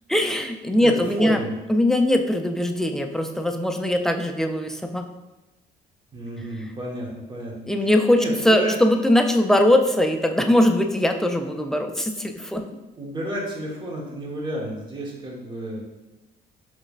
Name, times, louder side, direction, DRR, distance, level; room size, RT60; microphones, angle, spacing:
voice 1, 0.1-1.4 1.7-5.1 7.7-12.6, left 1 dB, 5° left, 4 dB, 0.3 m, -21 dB
voice 2, 0.8-1.5 6.1-8.7 13.0-15.8, right 1 dB, 30° right, -2 dB, 1.2 m, -31 dB
5.2 x 3.2 x 2.4 m, 1.0 s
cardioid pair, 110°, 17 cm